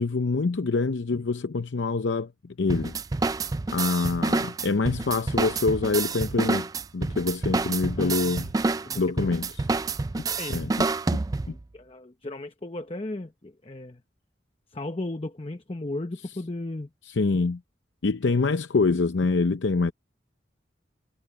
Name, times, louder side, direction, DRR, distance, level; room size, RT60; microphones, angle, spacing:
voice 1, 0.0-2.3 2.6-3.0 3.7-6.7 6.9-8.5 9.0-9.5 10.5-10.7 17.1-17.6 18.0-19.9, left 3 dB, 85° left, 0.6 m, -25 dB
sound 1, 2.7-11.6, right 3 dB, 20° right, 0.3 m, -28 dB
voice 2, 8.0-8.5 8.8-9.4 10.4-10.7 11.5-14.0 14.7-16.9, left 2 dB, 30° left, 0.9 m, -36 dB
head